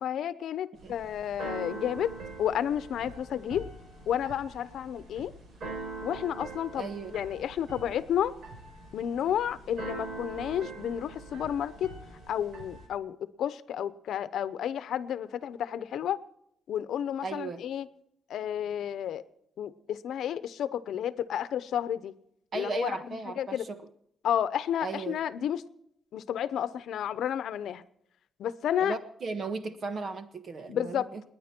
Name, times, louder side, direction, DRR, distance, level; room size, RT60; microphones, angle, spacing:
voice 1, 0.0-2.1 2.4-3.7 4.1-5.3 6.0-8.3 8.9-11.9 12.3-16.2 16.7-17.9 18.3-19.2 19.6-22.1 22.5-22.9 23.4-23.6 24.2-25.6 26.1-27.8 28.4-28.9 30.7-31.0, left 9 dB, 80° left, 15 dB, 0.8 m, -31 dB
Keyboard (musical), 0.8-12.9, right 3 dB, 60° right, 6.0 m, -43 dB
voice 2, 6.7-7.1 17.2-17.6 22.5-23.8 24.8-25.2 28.8-31.2, right 4 dB, 45° right, 9 dB, 1.5 m, -36 dB
29.0 x 10.0 x 4.5 m, 0.76 s
wide cardioid pair, 160°, 0 cm